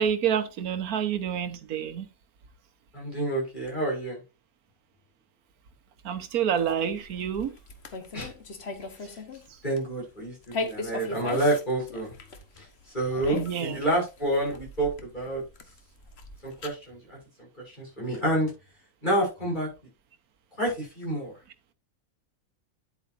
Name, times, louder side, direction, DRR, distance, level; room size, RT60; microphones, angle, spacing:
voice 1, 0.0-2.1 6.0-7.5 13.3-13.8, right 8 dB, 90° right, 1.4 m, -28 dB
voice 2, 2.9-4.2 8.1-8.3 9.0-9.2 9.6-12.1 12.6-12.7 12.9-15.4 16.4-17.2 17.6-18.5 19.0-19.7 20.6-21.3, right 1 dB, 30° left, 6.7 m, -28 dB
sound 1, 6.6-9.5 9.8-10.0 10.4-16.7, left 3 dB, 50° left, 1.3 m, -38 dB
10.5 x 8.4 x 2.6 m
omnidirectional pair, 1.5 m